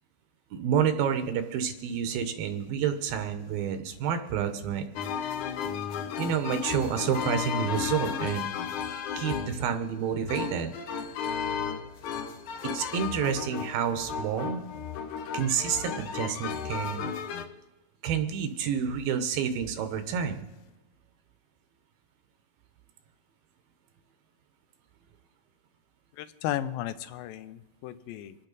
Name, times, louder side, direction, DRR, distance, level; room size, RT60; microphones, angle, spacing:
voice 1, 0.5-4.9 6.2-8.5 9.2-10.7 12.6-14.6 15.3-17.1 18.0-20.5, right 8 dB, 85° right, 8 dB, 2.8 m, -29 dB
sound 1, 5.0-17.5, left 7 dB, 70° left, 2.1 m, -34 dB
voice 2, 26.2-28.4, left 12 dB, 85° left, 11 dB, 2.5 m, -34 dB
26.0 x 8.8 x 4.0 m, 1.1 s
omnidirectional pair, 4.1 m